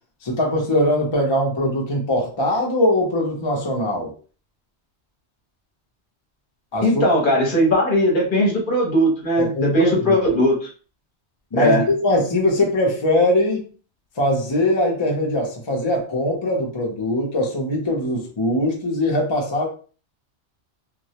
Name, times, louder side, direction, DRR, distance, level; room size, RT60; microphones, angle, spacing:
voice 1, 0.2-4.1 6.7-7.0 9.4-10.2 11.5-13.6 14.2-19.7, left 1 dB, 35° left, -1 dB, 0.5 m, -21 dB
voice 2, 6.8-10.7 11.5-11.8, equal, 50° left, -2 dB, 0.9 m, -18 dB
2.2 x 2.0 x 2.8 m, 0.38 s
omnidirectional pair, 1.2 m